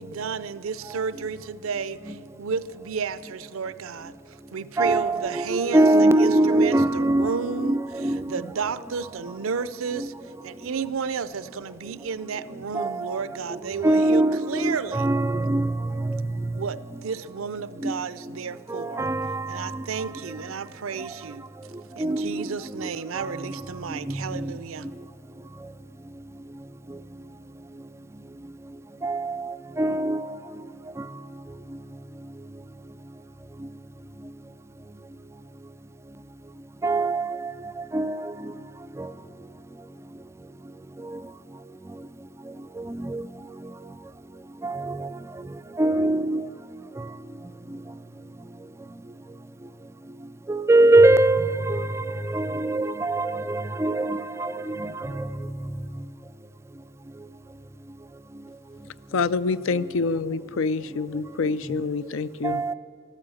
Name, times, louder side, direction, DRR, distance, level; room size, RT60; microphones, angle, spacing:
voice 1, 0.0-4.2 4.5-5.9 6.2-10.1 10.4-15.1 16.6-19.1 19.5-21.4 22.0-24.9, right 5 dB, 80° right, 0.5 m, -32 dB
voice 2, 4.8-8.4 12.7-13.1 13.8-15.7 16.0-16.2 17.8-17.9 18.7-19.6 22.0-22.5 22.8-22.9 24.1-24.5 29.0-29.5 29.8-30.3 36.8-37.4 37.9-38.3 39.0-39.1 42.9-43.2 44.6-45.0 45.8-46.4 50.5-55.3 62.4-62.7, right 2 dB, 15° right, 0.3 m, -22 dB
voice 3, 59.1-62.6, left 4 dB, 70° left, 0.4 m, -26 dB
13.5 x 13.0 x 7.0 m
head